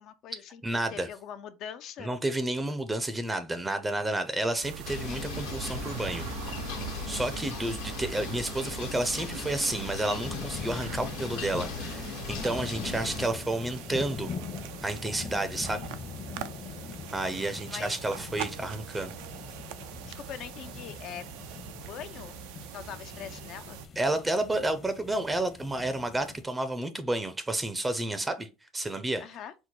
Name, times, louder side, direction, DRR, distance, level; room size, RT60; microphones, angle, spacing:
voice 1, 0.0-2.1 17.7-18.0 20.1-21.3 21.9-22.4 22.7-23.8 29.2-29.5, left 9 dB, 55° left, 0.4 m, -42 dB
voice 2, 0.6-1.1 2.0-6.2 7.1-14.3 14.8-15.8 17.1-19.1 24.0-28.5 28.7-29.3, right 1 dB, 15° right, 0.5 m, -31 dB
sound 1, 4.6-23.9, right 11 dB, 75° right, 0.4 m, -43 dB
sound 2, 4.8-13.3, left 4 dB, 80° left, 1.1 m, -38 dB
sound 3, 10.2-26.4, left 6 dB, 40° left, 0.8 m, -43 dB
4.5 x 2.1 x 4.1 m
supercardioid pair, 105°, 0 cm